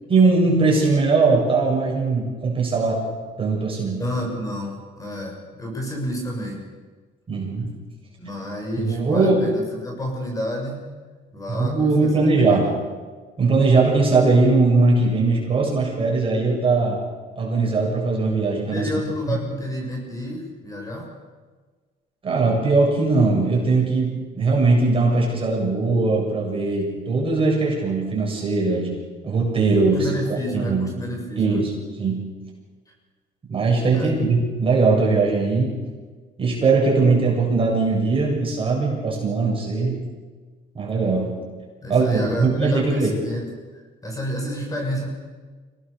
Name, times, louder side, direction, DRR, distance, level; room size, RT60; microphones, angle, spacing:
voice 1, 0.1-3.0 3.4-4.0 7.3-7.7 8.8-9.4 11.5-12.7 13.4-17.0 17.4-18.9 19.3-19.4 22.2-28.9 29.2-30.1 30.5-30.9 31.4-31.7 32.0-32.2 33.5-35.7 36.4-40.0 40.7-41.3 41.9-43.1, right 3 dB, 30° right, -2 dB, 7.7 m, -20 dB
voice 2, 4.0-6.6 8.2-10.9 11.3-12.8 18.7-21.1 29.8-31.7 33.9-34.2 41.8-43.4 43.7-45.1, equal, 20° left, 0 dB, 7.1 m, -30 dB
26.0 x 18.5 x 6.9 m, 1.4 s
cardioid pair, 110°, 17 cm